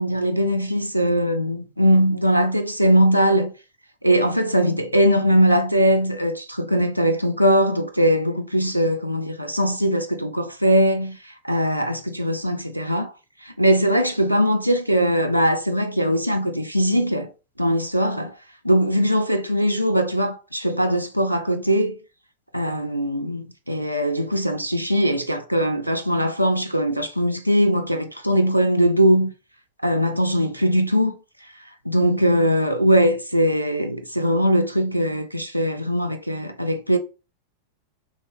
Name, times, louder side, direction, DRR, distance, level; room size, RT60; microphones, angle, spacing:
voice 1, 0.0-3.5 4.0-13.1 13.4-17.3 17.6-18.4 18.6-22.0 22.5-29.3 29.8-31.2 31.9-37.0, equal, 90° right, 0.3 m, -20 dB
3.0 x 2.9 x 2.3 m
figure-of-eight pair, 90°, 0 cm